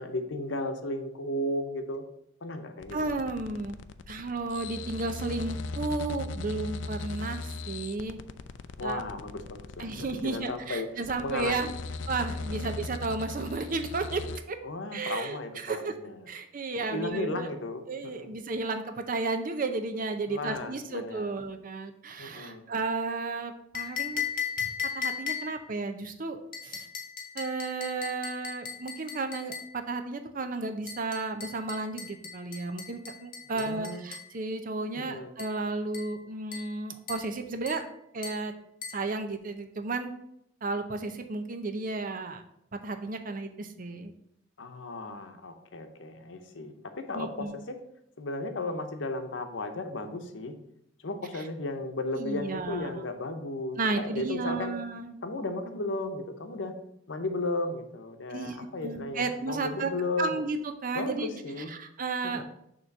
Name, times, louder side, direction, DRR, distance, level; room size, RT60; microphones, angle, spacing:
voice 1, 0.0-2.0 2.4-3.0 8.8-10.9 11.2-11.7 12.5-12.6 14.6-16.2 16.8-18.4 20.3-21.3 22.2-22.6 33.5-34.0 35.0-35.3 44.6-47.8 48.2-50.5 51.0-54.8 55.2-56.8 57.1-60.4 60.9-61.7 62.2-62.4, left 2 dB, 90° left, 6 dB, 0.8 m, -35 dB
sound 1, 2.8-14.4, left 3 dB, 70° left, 0.4 m, -39 dB
voice 2, 2.9-3.8 4.1-8.2 8.8-9.0 9.8-11.7 12.1-14.6 14.9-15.9 16.3-17.5 17.9-24.2 24.6-24.7 24.9-26.9 27.3-37.9 38.1-38.5 38.9-40.1 40.6-42.4 42.7-44.1 47.1-47.6 51.3-51.4 52.2-53.0 53.8-55.2 58.3-59.9 60.2-61.3 61.6-62.4, right 3 dB, 45° right, 7 dB, 0.6 m, -33 dB
sound 2, 23.7-25.7 26.5-29.8 30.9-34.3 35.4-35.6 35.9-36.2 36.5-36.8 37.1-37.3 37.7-37.9 38.2-38.5 38.8-39.1, left 7 dB, 50° left, 0.9 m, -37 dB
6.7 x 3.1 x 5.9 m, 0.76 s
head